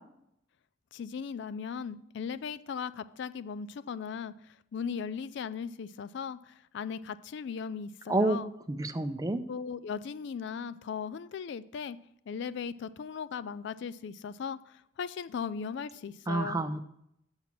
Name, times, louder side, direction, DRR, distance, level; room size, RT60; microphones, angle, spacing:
voice 1, 0.9-8.5 9.5-12.0 12.3-16.6, left 6 dB, 65° left, 0.4 m, -38 dB
voice 2, 8.7-9.4 16.3-16.8, right 2 dB, 20° right, 0.5 m, -28 dB
7.7 x 7.0 x 5.8 m
head